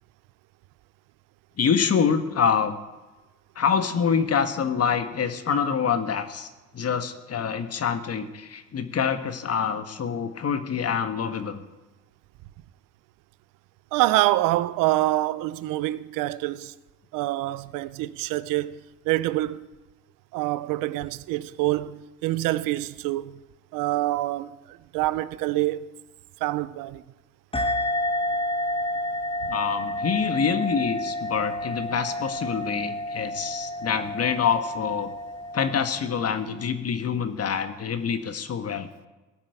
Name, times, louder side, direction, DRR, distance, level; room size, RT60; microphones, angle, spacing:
voice 1, 1.6-2.8 3.5-11.6 29.5-35.1 35.5-38.9, left 6 dB, 50° left, 1.5 m, -26 dB
voice 2, 13.9-16.7 17.1-19.7 20.3-23.4 23.7-25.9 26.4-27.0, right 16 dB, 85° right, 0.6 m, -26 dB
sound 1, 27.5-36.6, left 1 dB, 15° left, 1.8 m, -30 dB
17.5 x 6.0 x 9.1 m
supercardioid pair, 70°, 32 cm